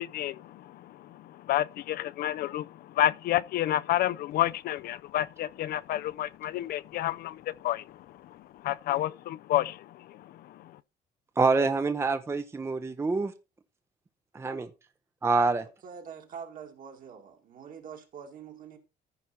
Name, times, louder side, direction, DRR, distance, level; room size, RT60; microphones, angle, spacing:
voice 1, 0.0-10.8, left 13 dB, 65° left, 0.4 m, -30 dB
voice 2, 11.4-13.3 14.4-14.7 15.2-15.6, right 3 dB, 15° right, 0.6 m, -26 dB
voice 3, 15.6-18.8, right 7 dB, 55° right, 2.2 m, -45 dB
14.0 x 4.8 x 4.2 m
cardioid pair, 110°, 17 cm